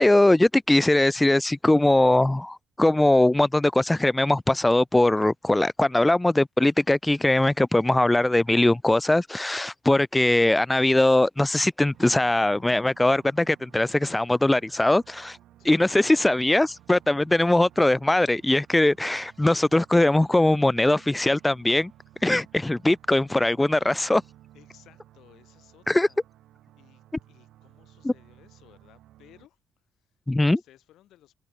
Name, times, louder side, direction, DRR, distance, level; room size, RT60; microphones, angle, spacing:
voice 1, 0.0-15.4 15.6-21.9 22.2-24.2 25.9-26.1 28.0-28.1 30.3-30.6, left 1 dB, 10° left, 0.4 m, -21 dB
sound 1, 11.9-29.5, right 13 dB, 85° right, 5.2 m, -56 dB
voice 2, 15.6-16.2 24.5-26.2 26.8-31.3, left 13 dB, 80° left, 5.0 m, -58 dB
cardioid pair, 90°, 0 cm